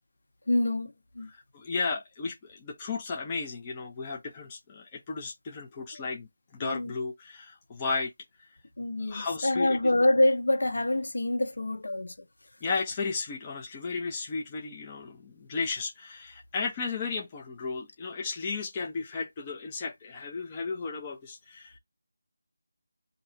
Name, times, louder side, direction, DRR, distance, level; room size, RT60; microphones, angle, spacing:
voice 1, 0.5-1.3 5.9-6.1 6.6-6.9 8.8-12.1, left 1 dB, 65° left, 0.9 m, -26 dB
voice 2, 1.3-8.1 9.0-9.8 12.6-21.8, left 4 dB, 10° left, 0.4 m, -34 dB
3.1 x 2.6 x 4.2 m
figure-of-eight pair, 180°, 0 cm